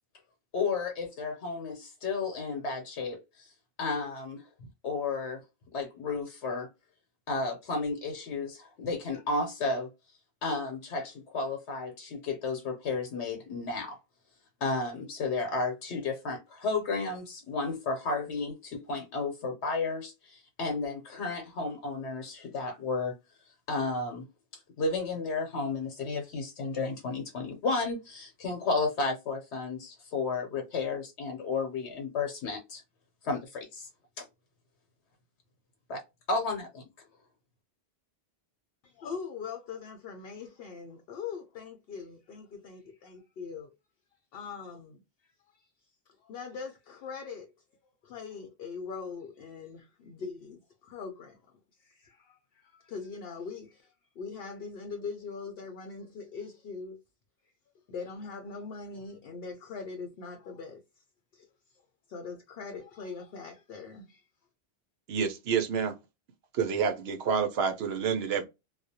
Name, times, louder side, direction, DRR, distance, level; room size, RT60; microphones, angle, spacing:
voice 1, 0.5-3.5 3.8-4.4 4.8-5.4 5.7-6.7 7.3-9.9 10.4-14.0 14.6-23.2 23.7-24.2 24.8-32.8 33.2-33.9 34.2-34.3 35.9-36.0 36.3-36.9, left 3 dB, 90° left, 1.0 m, -32 dB
voice 2, 38.8-43.7 44.3-45.0 46.2-47.5 48.0-51.4 51.8-57.0 57.9-60.8 61.3-61.5 62.1-64.2, left 5 dB, 70° left, 0.7 m, -41 dB
voice 3, 65.1-65.9 66.5-68.4, right 6 dB, 75° right, 0.8 m, -28 dB
2.3 x 2.1 x 2.7 m
omnidirectional pair, 1.1 m